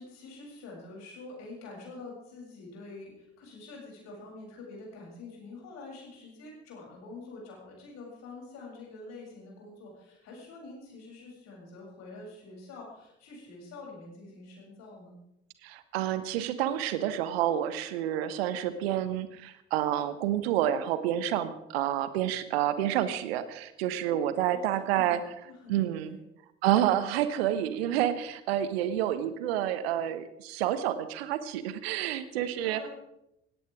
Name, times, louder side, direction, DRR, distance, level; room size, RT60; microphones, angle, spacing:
voice 1, 0.0-15.2 24.5-26.2 32.6-32.9, left 3 dB, 55° left, -2 dB, 7.8 m, -46 dB
voice 2, 15.6-25.2 25.7-26.2 26.6-32.9, right 11 dB, 65° right, 13 dB, 1.2 m, -29 dB
19.5 x 17.0 x 3.6 m, 0.84 s
figure-of-eight pair, 55°, 33 cm